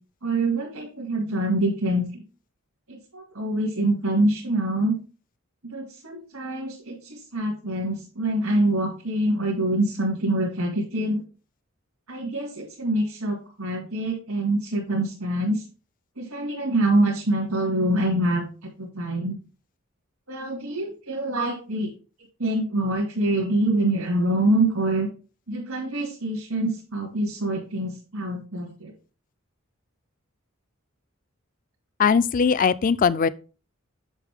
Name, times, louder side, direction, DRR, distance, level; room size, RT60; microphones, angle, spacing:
voice 1, 0.2-2.2 2.9-5.0 5.6-11.2 12.1-15.6 16.2-19.3 20.3-21.9 22.4-25.1 25.5-28.9, right 1 dB, 85° right, 2.4 m, -25 dB
voice 2, 32.0-33.3, left 6 dB, 40° left, 0.4 m, -20 dB
8.2 x 6.6 x 3.6 m
head